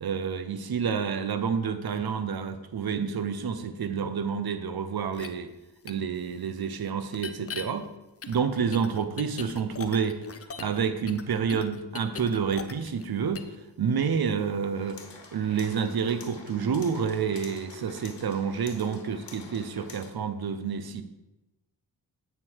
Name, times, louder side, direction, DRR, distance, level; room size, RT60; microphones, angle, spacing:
voice 1, 0.0-5.5 5.8-7.9 8.3-10.2 10.6-13.5 13.8-15.0 15.3-21.0, right 6 dB, 50° right, 11 dB, 0.8 m, -29 dB
sound 1, 5.1-5.3 5.9-6.0 7.1-7.6 8.2-10.8 11.1-13.1 13.3-13.6, left 6 dB, 30° left, 0.6 m, -39 dB
sound 2, 14.7-20.1, left 4 dB, 60° left, 1.4 m, -48 dB
8.7 x 4.0 x 4.6 m, 0.98 s
supercardioid pair, 40°, 47 cm